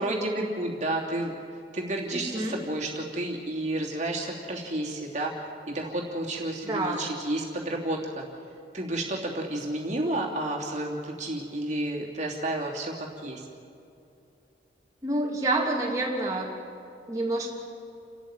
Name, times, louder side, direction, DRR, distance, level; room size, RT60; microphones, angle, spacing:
voice 1, 0.0-1.4 1.7-5.3 5.7-8.2 8.7-13.4, right 1 dB, 40° right, -2 dB, 3.0 m, -31 dB
voice 2, 2.1-2.6 6.6-7.0 15.0-16.5 17.1-17.5, right 2 dB, 20° right, -4 dB, 2.8 m, -28 dB
30.0 x 13.0 x 9.0 m, 2.6 s
head